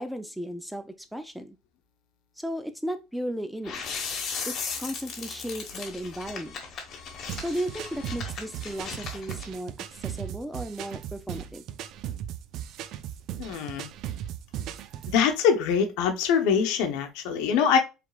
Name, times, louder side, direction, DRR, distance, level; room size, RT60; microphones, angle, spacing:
voice 1, 0.0-1.6 2.4-3.8 4.5-6.6 7.4-11.6, equal, ahead, 0.5 m, -35 dB
sound 1, 3.6-9.5, left 5 dB, 45° left, 1.2 m, -37 dB
sound 2, 7.3-15.2, right 10 dB, 55° right, 0.4 m, -37 dB
voice 2, 13.4-13.9 15.1-17.8, left 7 dB, 80° left, 0.9 m, -23 dB
4.8 x 3.3 x 2.3 m
cardioid pair, 125°, 0 cm